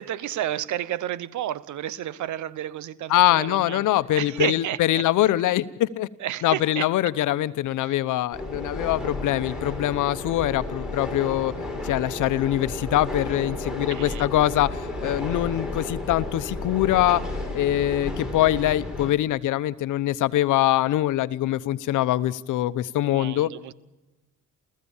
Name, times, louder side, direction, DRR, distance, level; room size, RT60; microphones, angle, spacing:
voice 1, 0.0-3.9 4.2-5.0 6.2-6.9 7.8-8.0 13.9-14.3 23.0-23.7, right 12 dB, 75° right, 1.0 m, -31 dB
voice 2, 3.1-6.1 6.4-11.5 11.8-17.2 17.5-23.5, left 14 dB, 85° left, 1.0 m, -23 dB
sound 1, 8.3-19.1, left 2 dB, ahead, 6.0 m, -32 dB
29.5 x 15.0 x 7.2 m
cardioid pair, 90°, 30 cm